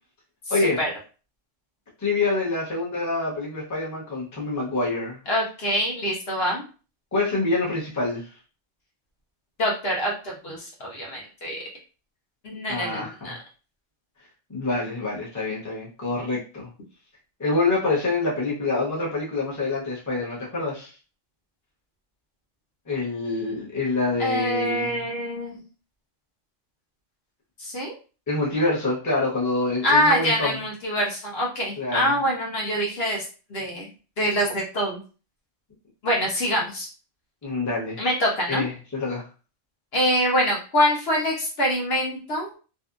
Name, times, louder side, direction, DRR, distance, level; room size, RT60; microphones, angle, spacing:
voice 1, 2.0-5.2 7.1-8.3 12.7-13.4 14.5-16.7 17.4-20.9 22.9-25.0 28.3-30.5 31.8-32.1 37.4-38.0 38.5-39.3, left 3 dB, 15° left, -5 dB, 0.7 m, -26 dB
voice 2, 5.3-6.6 9.6-11.6 12.4-13.4 24.2-25.6 27.6-27.9 29.8-33.2 33.5-33.9 34.2-35.0 36.0-36.9 38.0-38.6 39.9-42.5, equal, 55° left, -3 dB, 0.9 m, -25 dB
2.7 x 2.4 x 2.4 m, 0.35 s
omnidirectional pair, 1.3 m